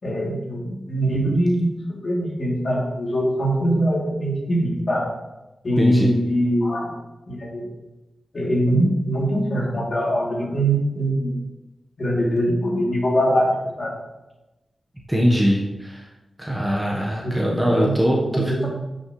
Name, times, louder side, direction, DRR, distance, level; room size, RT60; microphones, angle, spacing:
voice 1, 0.0-5.1 5.6-6.9 7.3-7.7 8.3-11.4 12.0-13.9 17.2-17.3 17.6-17.9 18.3-18.7, right 1 dB, 55° left, -4 dB, 2.9 m, -22 dB
voice 2, 5.8-6.1 15.1-16.1 16.4-18.6, equal, 10° right, -3 dB, 1.2 m, -21 dB
10.0 x 6.3 x 3.2 m, 1.0 s
wide cardioid pair, 75°, 0 cm